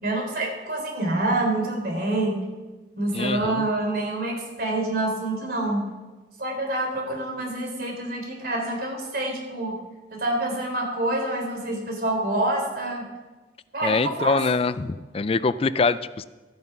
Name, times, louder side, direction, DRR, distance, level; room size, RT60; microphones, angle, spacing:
voice 1, 0.0-2.4 3.0-5.9 6.4-9.8 10.1-13.1 13.7-14.4, right 2 dB, 55° right, 1 dB, 3.7 m, -27 dB
voice 2, 3.1-3.7 13.8-16.2, left 4 dB, 35° left, 15 dB, 0.4 m, -24 dB
13.5 x 9.3 x 6.0 m, 1.2 s
head